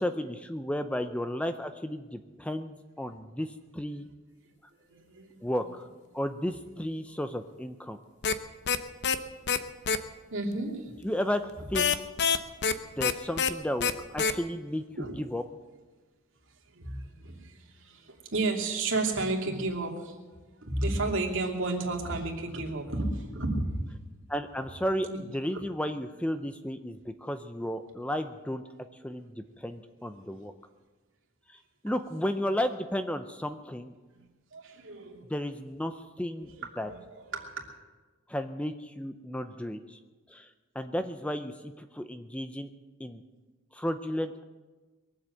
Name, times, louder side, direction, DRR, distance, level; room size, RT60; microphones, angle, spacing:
voice 1, 0.0-4.1 5.4-5.9 6.1-8.0 11.0-12.1 13.0-14.8 15.2-15.4 24.3-28.6 29.0-30.5 31.5-31.6 31.8-33.9 35.3-36.5 36.8-36.9 38.3-40.0 40.3-40.5 40.7-42.7 43.0-43.2 43.7-44.4, equal, 5° left, 9 dB, 0.5 m, -33 dB
voice 2, 4.7-5.6 10.3-10.9 12.8-13.0 15.0-15.1 16.7-20.2 20.6-23.8 25.1-25.2 25.5-25.6 34.1-34.2 34.5-35.3 36.5-37.6, right 2 dB, 60° right, 0 dB, 2.8 m, -32 dB
sound 1, 8.2-8.3 8.7-8.8 9.0-9.2 9.5-9.6 9.9-10.0 11.7-12.7 13.0-13.1 13.4-13.5 13.8-13.9 14.2-14.3, left 6 dB, 55° left, 0.8 m, -25 dB
22.5 x 7.9 x 7.9 m, 1.3 s
head